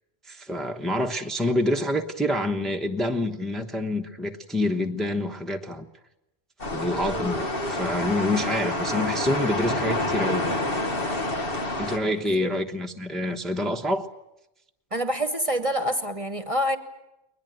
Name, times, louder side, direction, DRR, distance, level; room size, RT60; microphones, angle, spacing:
voice 1, 0.3-5.9 6.7-10.8 11.8-14.1, left 1 dB, ahead, 3 dB, 1.1 m, -27 dB
sound 1, 6.6-12.0, left 2 dB, 65° left, 2.0 m, -28 dB
voice 2, 12.1-12.5 14.9-16.8, equal, 35° right, 10 dB, 1.2 m, -27 dB
22.0 x 20.5 x 9.2 m, 0.91 s
omnidirectional pair, 1.0 m